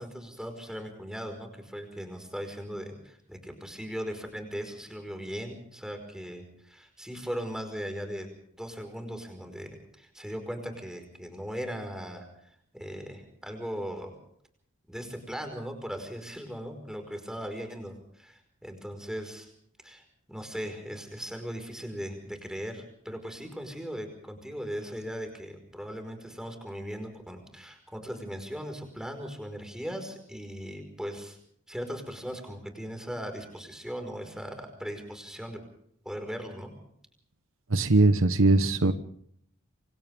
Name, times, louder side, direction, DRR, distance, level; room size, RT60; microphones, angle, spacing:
voice 1, 0.0-8.3 8.6-9.7 10.0-12.2 12.7-14.1 14.9-19.5 19.8-20.0 20.3-31.4 31.7-35.6 36.0-36.7, equal, 5° right, 5 dB, 5.0 m, -38 dB
voice 2, 37.7-38.9, right 2 dB, 65° right, 10 dB, 1.2 m, -21 dB
28.5 x 25.5 x 3.6 m, 0.67 s
head